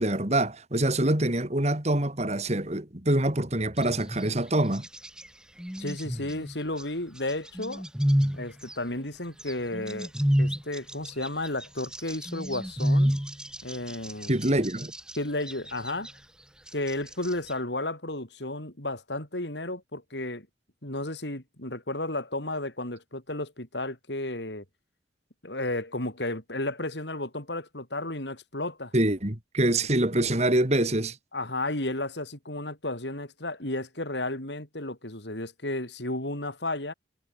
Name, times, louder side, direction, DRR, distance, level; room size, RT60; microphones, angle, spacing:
voice 1, 0.0-4.9 14.3-14.9 28.9-31.2, right 1 dB, 40° right, 2.7 m, -25 dB
sound 1, 3.8-4.4 4.7-5.3 5.6-6.8 7.3-8.7 9.4-15.2 15.5-16.1 16.7-17.5, equal, 5° right, 0.8 m, -29 dB
voice 2, 5.8-7.8 8.3-10.1 10.4-13.2 13.6-14.3 15.2-16.1 16.7-20.5 20.8-24.6 25.4-28.9 31.3-36.9, left 2 dB, 75° left, 6.5 m, -33 dB
head